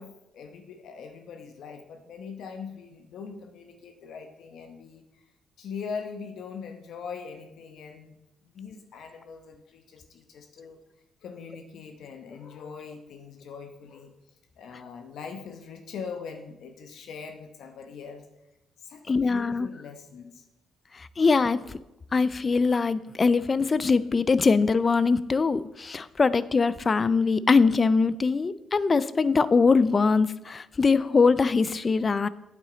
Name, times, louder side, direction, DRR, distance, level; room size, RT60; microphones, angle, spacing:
voice 1, 0.0-5.2 5.6-8.2 8.5-10.8 11.2-14.1 14.6-18.3 18.8-20.5, left 5 dB, 75° left, 6 dB, 0.9 m, -41 dB
voice 2, 19.1-19.7 20.9-21.6 22.1-32.3, left 4 dB, 35° left, 17 dB, 0.4 m, -22 dB
8.8 x 8.1 x 3.9 m, 0.94 s
cardioid pair, 90°, 0 cm